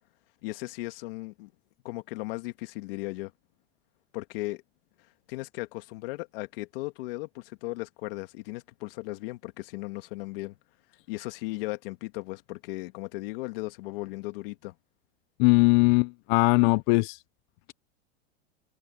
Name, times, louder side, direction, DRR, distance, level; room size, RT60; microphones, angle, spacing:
voice 1, 0.4-1.5 1.8-3.3 4.1-4.6 5.3-10.6 11.1-14.7, left 21 dB, 70° left, 2.2 m, -36 dB
voice 2, 15.4-17.2, left 27 dB, 55° left, 0.5 m, -20 dB
supercardioid pair, 125°, 30 cm